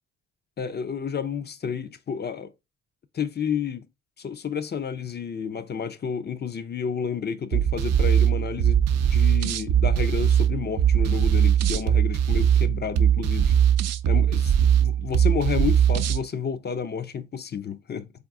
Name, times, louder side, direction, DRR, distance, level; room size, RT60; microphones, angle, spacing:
voice 1, 0.6-2.5 3.1-3.9 4.2-13.5 14.1-18.1, left 7 dB, 35° left, 0.5 m, -31 dB
sound 1, 7.5-16.2, right 9 dB, 60° right, 0.5 m, -21 dB
3.9 x 3.6 x 3.7 m
cardioid pair, 90°, 30 cm